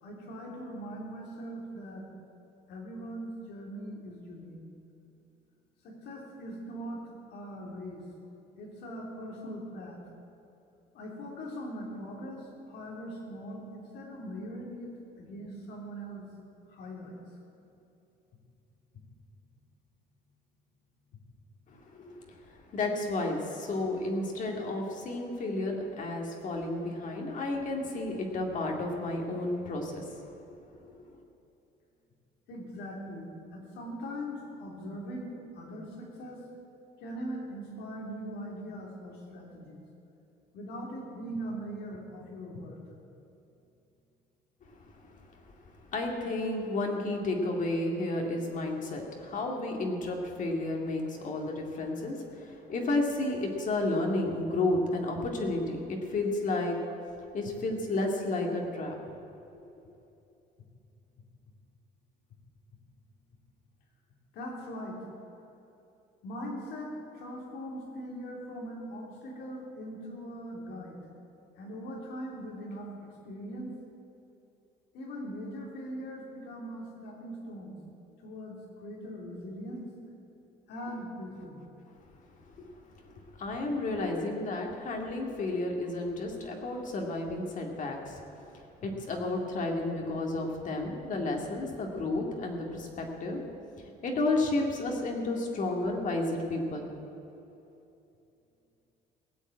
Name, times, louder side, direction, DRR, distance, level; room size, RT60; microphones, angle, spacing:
voice 1, 0.0-2.1 2.7-4.6 5.8-8.0 8.6-10.0 10.9-16.3 16.7-17.2 32.5-36.4 37.0-39.8 40.5-42.8 64.3-65.1 66.2-71.0 71.6-73.8 74.9-77.8 78.2-79.9 80.7-81.6 83.9-84.3, equal, 80° left, -1 dB, 3.4 m, -41 dB
voice 2, 21.7-30.2 30.7-30.9 44.9-45.1 45.9-56.8 57.3-59.0 82.6-82.7 83.0-88.2 88.5-93.4 93.8-96.9, left 2 dB, 50° left, 1 dB, 2.2 m, -32 dB
18.5 x 7.2 x 8.7 m, 2.8 s
cardioid pair, 110°, 17 cm